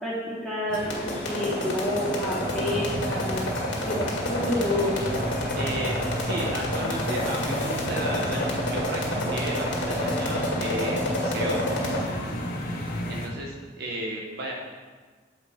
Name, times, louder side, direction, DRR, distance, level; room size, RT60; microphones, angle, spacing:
voice 1, 0.0-3.5 3.8-5.0, left 1 dB, ahead, -10 dB, 2.2 m, -29 dB
sound 1, 0.7-12.0, left 1 dB, 90° left, 1.8 m, -29 dB
sound 2, 0.7-13.3, left 1 dB, 50° left, 1.0 m, -33 dB
sound 3, 2.4-11.3, right 2 dB, 30° right, 0.4 m, -41 dB
voice 2, 5.5-11.6 13.1-14.5, right 1 dB, 60° right, -1 dB, 0.8 m, -33 dB
7.5 x 4.6 x 4.2 m, 1.4 s
head